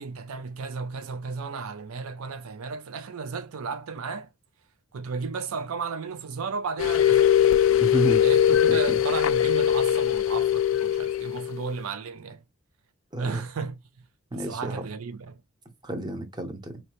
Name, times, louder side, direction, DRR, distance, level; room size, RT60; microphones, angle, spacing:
voice 1, 0.0-4.3 4.9-7.5 8.2-12.4 13.2-13.8 14.3-15.4, right 5 dB, 80° right, 0.5 m, -34 dB
sound 1, 6.8-11.7, left 10 dB, 65° left, 0.4 m, -21 dB
voice 2, 7.8-8.2 8.7-9.0 13.1-13.4 14.3-14.8 15.8-16.8, right 2 dB, 20° right, 0.8 m, -30 dB
4.2 x 2.9 x 2.9 m
head